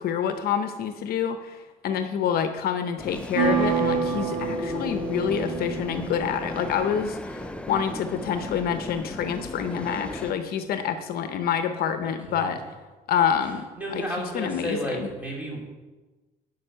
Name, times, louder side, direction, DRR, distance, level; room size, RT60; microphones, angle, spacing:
voice 1, 0.0-12.6 13.1-13.6 13.9-14.0 14.3-15.1, left 8 dB, 65° left, 8 dB, 0.7 m, -27 dB
sound 1, 3.0-10.3, left 1 dB, 5° left, 0.5 m, -37 dB
sound 2, 3.3-7.1, right 5 dB, 65° right, 1.8 m, -28 dB
voice 2, 12.0-12.7 13.7-15.7, equal, 10° right, -3 dB, 3.1 m, -33 dB
11.5 x 5.4 x 5.6 m, 1.2 s
cardioid pair, 110°, 17 cm